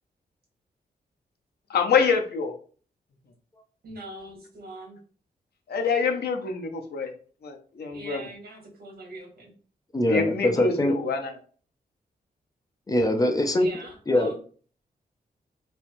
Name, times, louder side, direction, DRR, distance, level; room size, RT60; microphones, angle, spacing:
voice 1, 1.7-2.5 5.7-7.1 7.4-8.3 10.1-11.3, left 5 dB, 80° left, 4 dB, 0.8 m, -26 dB
voice 2, 3.8-5.0 7.9-9.5 13.6-14.4, right 2 dB, 70° right, 0 dB, 1.6 m, -42 dB
voice 3, 9.9-10.9 12.9-13.7 14.1-14.3, left 1 dB, 20° left, 4 dB, 0.6 m, -22 dB
3.2 x 3.0 x 3.0 m, 0.42 s
wide cardioid pair, 125°, 16 cm